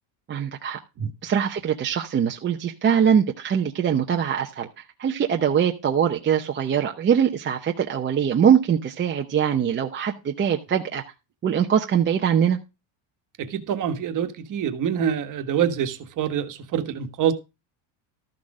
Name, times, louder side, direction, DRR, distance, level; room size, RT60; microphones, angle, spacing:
voice 1, 0.3-0.8 1.2-11.0 11.4-12.6, right 8 dB, 25° right, 0.8 m, -22 dB
voice 2, 13.4-17.3, right 8 dB, 40° right, 1.5 m, -26 dB
13.5 x 6.5 x 4.8 m
cardioid pair, 160°, 48 cm